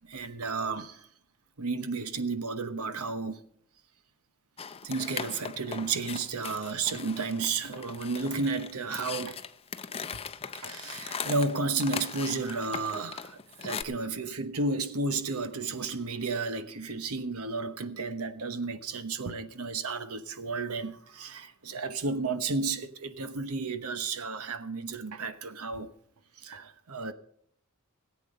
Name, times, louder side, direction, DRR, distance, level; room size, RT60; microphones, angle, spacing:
voice 1, 0.0-1.1 1.6-3.4 4.8-9.4 10.5-25.9 26.4-27.1, right 3 dB, 80° right, 1.0 m, -32 dB
sound 1, 4.6-13.8, left 6 dB, 25° left, 0.6 m, -39 dB
17.5 x 8.3 x 5.4 m
head